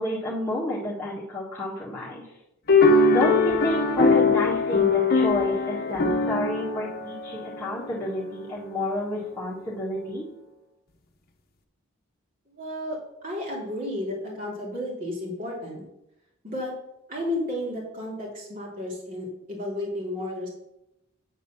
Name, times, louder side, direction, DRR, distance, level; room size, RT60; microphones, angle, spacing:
voice 1, 0.0-2.2 3.0-10.2, left 1 dB, 10° left, -9 dB, 1.7 m, -30 dB
sound 1, 2.7-8.2, left 3 dB, 45° left, 0.8 m, -22 dB
voice 2, 12.5-13.0 13.2-15.8 16.4-16.7 17.1-20.5, left 1 dB, 40° right, -4 dB, 2.6 m, -32 dB
9.1 x 4.0 x 7.0 m, 0.87 s
head